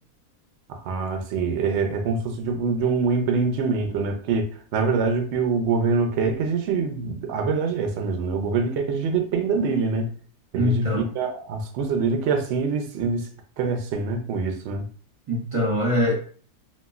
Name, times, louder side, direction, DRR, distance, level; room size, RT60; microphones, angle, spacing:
voice 1, 0.7-10.1 10.5-13.3 13.6-14.8, right 4 dB, 70° right, 5 dB, 0.6 m, -25 dB
voice 2, 10.5-11.0 15.3-16.2, left 1 dB, 30° right, -4 dB, 0.6 m, -22 dB
3.0 x 2.4 x 2.4 m, 0.42 s
omnidirectional pair, 1.7 m